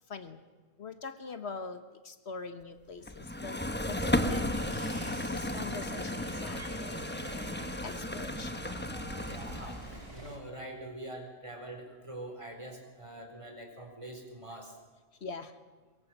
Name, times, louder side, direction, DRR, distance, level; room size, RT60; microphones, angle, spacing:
voice 1, 0.1-0.4 0.8-4.5 5.3-7.0 7.8-8.6 15.2-15.6, left 4 dB, 65° left, 9 dB, 1.5 m, -43 dB
sound 1, 3.1-10.1, left 1 dB, 10° left, 1.0 m, -34 dB
sound 2, 4.0-10.4, right 2 dB, 60° right, 3.9 m, -46 dB
voice 2, 9.2-14.7, right 1 dB, 25° right, 3 dB, 4.4 m, -44 dB
23.0 x 22.5 x 8.0 m, 1.3 s
omnidirectional pair, 1.2 m